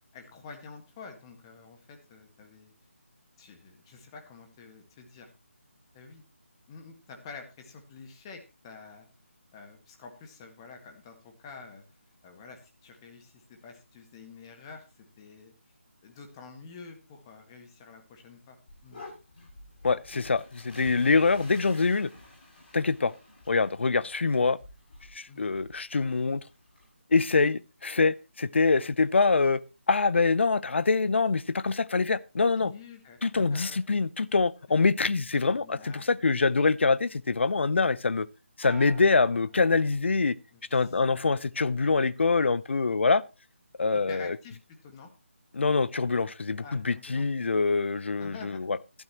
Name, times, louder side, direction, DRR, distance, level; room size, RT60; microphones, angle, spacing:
voice 1, 0.1-2.7 3.4-5.3 5.9-6.2 6.7-9.1 9.5-11.8 12.2-15.5 16.0-18.6 18.8-19.0 25.3-25.4 32.6-33.8 35.4-36.1 40.5-41.0 43.9-45.1 46.6-47.2 48.2-48.6, left 4 dB, 20° left, 1.8 m, -48 dB
sound 1, 18.7-26.9, left 2 dB, 40° left, 7.2 m, -50 dB
voice 2, 19.8-22.1 22.7-23.1 23.5-24.6 25.1-26.4 27.1-29.6 29.9-32.7 33.2-38.3 38.6-40.4 40.7-43.2 43.8-44.4 45.5-48.8, left 4 dB, 60° left, 0.7 m, -25 dB
sound 2, 38.6-40.4 40.8-41.3, right 3 dB, 10° right, 5.0 m, -50 dB
14.5 x 12.0 x 3.0 m
figure-of-eight pair, 160°, 7 cm